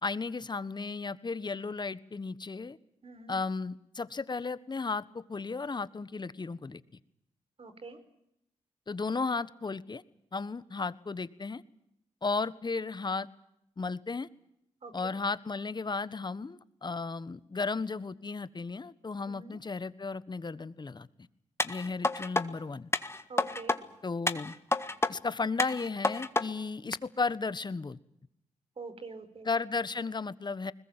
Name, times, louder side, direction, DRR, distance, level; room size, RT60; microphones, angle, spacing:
voice 1, 0.0-2.8 3.3-6.8 8.9-10.0 10.3-11.6 12.2-13.3 13.8-14.3 14.9-21.1 21.6-22.9 24.0-24.6 25.1-28.0 29.4-30.7, left 4 dB, 35° left, 16 dB, 1.4 m, -34 dB
voice 2, 3.0-3.3 7.6-8.0 14.8-15.1 19.3-19.6 23.3-23.8 28.8-29.5, right 4 dB, 50° right, 10 dB, 4.9 m, -45 dB
sound 1, 21.6-22.4 22.9-23.8 24.3-25.1 25.6-26.4 26.9-27.0, left 2 dB, 20° left, 1.7 m, -29 dB
21.5 x 21.0 x 9.0 m, 0.77 s
cardioid pair, 55°, 12 cm